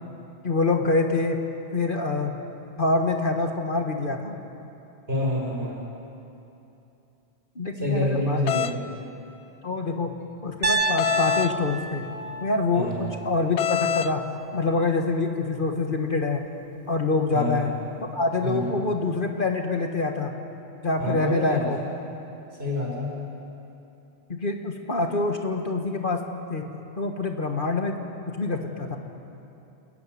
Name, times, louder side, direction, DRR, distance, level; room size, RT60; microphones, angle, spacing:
voice 1, 0.4-1.4 1.7-2.3 2.8-4.4 7.5-8.4 9.6-10.1 10.4-12.2 12.4-14.2 14.5-16.4 16.9-17.7 18.0-20.3 20.8-21.8 24.3-26.2 26.5-26.6 27.0-28.0 28.3-29.0, left 3 dB, 50° left, 4 dB, 1.7 m, -25 dB
voice 2, 5.1-5.8 7.8-8.8 9.6-9.7 12.7-13.1 17.3-17.7 18.4-18.7 21.0-21.7 22.6-23.2, left 1 dB, 65° right, -3 dB, 6.4 m, -27 dB
sound 1, 8.5-8.8 11.0-11.5 13.6-14.1, left 9 dB, 85° left, 1.0 m, -25 dB
Piano, 10.6-14.7, right 2 dB, 30° right, 1.3 m, -30 dB
29.5 x 14.5 x 9.6 m, 2.8 s
omnidirectional pair, 1.1 m